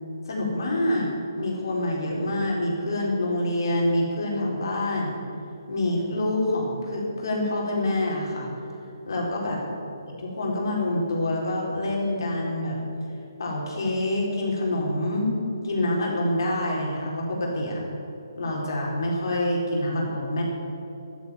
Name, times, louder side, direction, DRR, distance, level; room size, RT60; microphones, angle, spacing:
voice 1, 0.3-1.1 1.4-5.2 5.7-8.5 9.0-9.6 10.2-12.8 13.4-15.3 15.6-17.8 18.3-20.4, left 1 dB, 65° left, -2 dB, 4.3 m, -26 dB
12.0 x 11.5 x 9.6 m, 2.8 s
hypercardioid pair, 150°, 2 cm